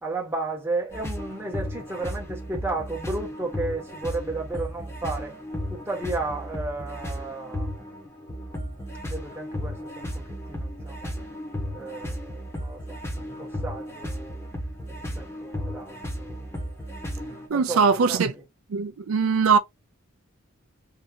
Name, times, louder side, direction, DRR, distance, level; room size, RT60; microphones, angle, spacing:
voice 1, 0.0-5.4 5.7-7.7 9.1-11.1 11.7-14.4 14.9-16.7 17.5-18.4, right 2 dB, 10° right, 1.3 m, -34 dB
sound 1, 0.9-17.5, equal, 15° left, 1.2 m, -34 dB
voice 2, 17.5-18.3 18.7-19.6, right 5 dB, 80° right, 0.4 m, -21 dB
3.7 x 2.7 x 2.8 m
head